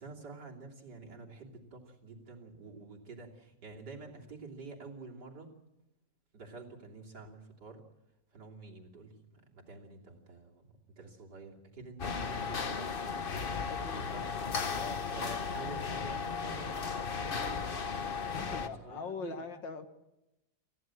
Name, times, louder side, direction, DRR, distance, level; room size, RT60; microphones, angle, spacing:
voice 1, 0.0-5.5 6.3-7.8 8.3-13.2 14.1-14.3 15.1-17.7 18.5-19.4, right 3 dB, 65° right, 0 dB, 3.6 m, -49 dB
sound 1, 12.0-18.7, left 5 dB, 35° left, 1.1 m, -35 dB
voice 2, 13.7-14.1 14.7-15.0 18.3-19.9, left 5 dB, 85° left, 8 dB, 2.2 m, -42 dB
28.0 x 15.0 x 7.7 m, 0.93 s
omnidirectional pair, 2.0 m